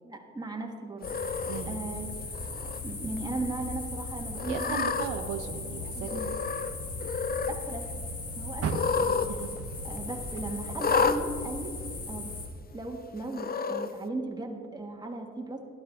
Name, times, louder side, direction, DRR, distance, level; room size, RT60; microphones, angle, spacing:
voice 1, 0.0-1.1 1.7-2.1 2.8-4.8 5.9-6.3 7.5-7.8 8.4-9.3 9.8-11.7 12.1-12.3 12.7-15.7, right 2 dB, 15° right, 1 dB, 1.5 m, -37 dB
sound 1, 1.0-12.5, left 3 dB, 50° left, 1.9 m, -38 dB
Cat, 1.0-1.6 2.3-2.8 3.2-3.3 4.4-5.1 6.1-6.7 7.0-7.6 8.6-9.3 9.6-9.7 10.8-11.2 12.1-12.2 13.3-13.9, left 5 dB, 30° left, 0.6 m, -29 dB
voice 2, 1.5-1.8 4.5-6.1 9.3-9.5, right 7 dB, 85° right, 7 dB, 0.8 m, -36 dB
Car, 8.6-11.8 12.2-13.6 14.1-14.2 14.8-14.9, right 6 dB, 50° right, 0.8 m, -39 dB
12.0 x 11.0 x 3.6 m, 2.2 s
cardioid pair, 90°, 30 cm